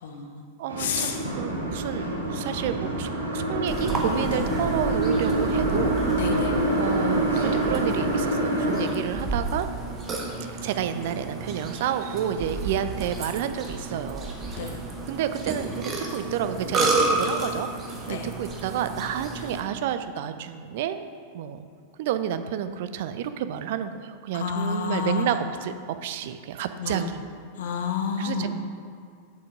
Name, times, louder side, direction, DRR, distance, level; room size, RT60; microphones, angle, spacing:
voice 1, 0.0-0.4 0.8-1.2 4.3-4.5 6.2-6.5 14.6-14.8 18.1-18.3 24.3-25.3 26.8-27.0 27.6-28.5, left 6 dB, 60° left, 4 dB, 1.0 m, -29 dB
voice 2, 0.6-6.0 6.8-9.7 10.6-14.8 15.1-17.7 18.1-21.0 21.3-21.6 22.0-25.7 26.0-27.2 28.2-28.5, right 9 dB, 50° right, 10 dB, 0.5 m, -30 dB
sound 1, 0.7-8.9, right 1 dB, 80° right, 1.6 m, -26 dB
Burping eructation, 3.7-19.6, right 2 dB, 25° right, 1.3 m, -31 dB
7.9 x 6.9 x 5.3 m, 2.2 s
figure-of-eight pair, 90°, 0 cm